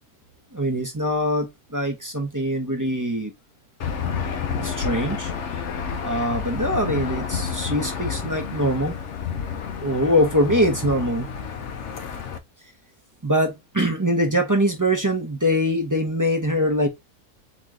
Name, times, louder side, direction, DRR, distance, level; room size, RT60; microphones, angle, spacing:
voice 1, 0.5-3.3 4.6-5.3 6.0-9.0 9.8-11.3 13.2-16.9, equal, 15° right, 0.7 m, -23 dB
Aircraft / Engine, 3.8-12.4, left 6 dB, 55° left, 0.9 m, -30 dB
4.2 x 3.1 x 3.6 m
omnidirectional pair, 1.7 m